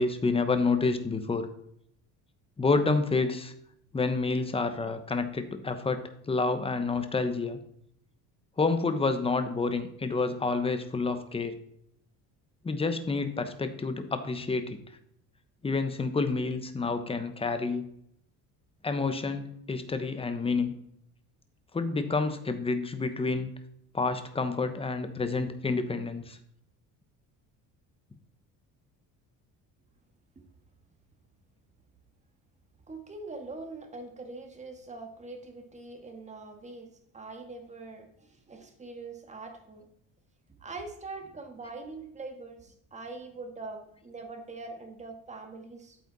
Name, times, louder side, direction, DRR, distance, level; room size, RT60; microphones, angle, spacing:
voice 1, 0.0-1.5 2.6-3.5 3.9-7.6 8.6-11.6 12.6-14.8 15.6-17.8 18.8-20.7 21.7-23.5 23.9-26.4, left 3 dB, 15° left, 9 dB, 1.1 m, -29 dB
voice 2, 32.9-39.9 40.5-46.0, right 3 dB, 20° right, 4 dB, 1.9 m, -43 dB
13.5 x 8.5 x 4.1 m, 0.72 s
cardioid pair, 155°, 36 cm